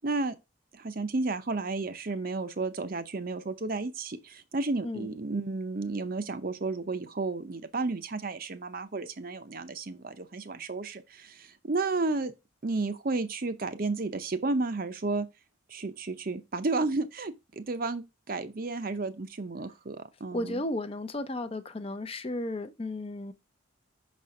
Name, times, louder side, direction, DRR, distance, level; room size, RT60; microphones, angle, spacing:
voice 1, 0.0-0.4 0.7-12.3 12.6-15.3 15.7-20.6, right 3 dB, 45° right, 0.6 m, -32 dB
voice 2, 20.3-23.3, left 1 dB, 25° left, 0.5 m, -34 dB
6.0 x 4.3 x 4.7 m
head